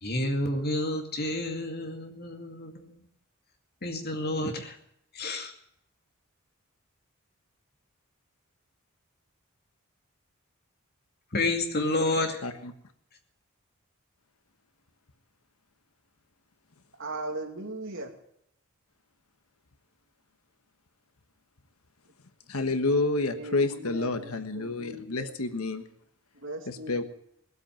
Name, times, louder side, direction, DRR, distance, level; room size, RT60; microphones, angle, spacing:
voice 1, 0.0-3.1 3.8-4.8 5.1-5.5 11.3-12.4, left 2 dB, 50° left, 4 dB, 2.4 m, -30 dB
voice 2, 12.4-12.7 22.5-25.9 26.7-27.0, left 3 dB, 90° left, 9 dB, 1.4 m, -29 dB
voice 3, 17.0-18.1 23.3-25.3 26.4-27.0, right 2 dB, 60° right, 3 dB, 2.7 m, -38 dB
19.5 x 8.3 x 8.9 m, 0.73 s
head